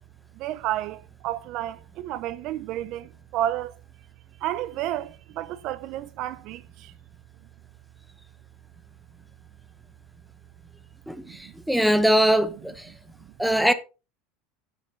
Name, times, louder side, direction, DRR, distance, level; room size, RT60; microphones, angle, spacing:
voice 1, 0.4-3.8 4.4-6.9 11.3-11.5, right 13 dB, 50° right, 0.4 m, -31 dB
voice 2, 11.1-11.4 11.7-12.9 13.4-13.7, right 1 dB, ahead, 0.8 m, -21 dB
9.2 x 9.0 x 3.3 m
supercardioid pair, 150°, 0 cm